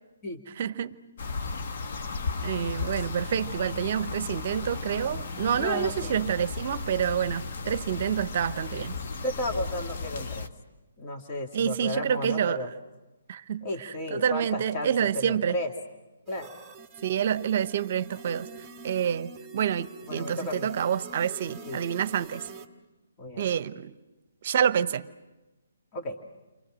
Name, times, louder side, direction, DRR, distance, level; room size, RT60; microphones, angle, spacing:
voice 1, 0.6-1.0 2.4-8.9 11.5-12.6 13.3-15.6 17.0-18.5 18.8-22.5 23.4-23.9 24.4-25.1, right 9 dB, 50° right, 15 dB, 0.9 m, -28 dB
sound 1, 1.2-10.5, left 4 dB, 55° left, 1.3 m, -35 dB
voice 2, 5.6-6.2 9.2-10.5 11.0-12.7 13.6-15.7 16.3-16.5 20.1-20.7 21.7-21.8 23.2-23.5 25.9-26.2, left 1 dB, 30° left, 2 dB, 2.4 m, -33 dB
sound 2, 16.3-22.7, right 4 dB, 10° right, 2.0 m, -45 dB
30.0 x 24.0 x 6.3 m, 1.1 s
hypercardioid pair, 140°, 0 cm